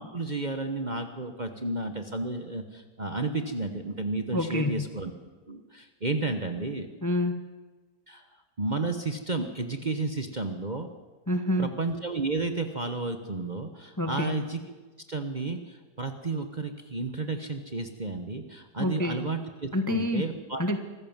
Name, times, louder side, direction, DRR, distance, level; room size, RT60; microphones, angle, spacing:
voice 1, 0.0-5.1 5.5-6.9 8.1-8.2 8.6-10.9 11.6-14.6 15.1-20.6, right 3 dB, 30° right, 6 dB, 1.2 m, -32 dB
voice 2, 4.3-4.8 7.0-7.5 11.3-11.7 14.0-14.3 18.8-19.3 19.7-20.3 20.6-20.8, left 1 dB, 10° left, 7 dB, 1.0 m, -27 dB
25.0 x 15.0 x 7.4 m, 1.3 s
omnidirectional pair, 1.9 m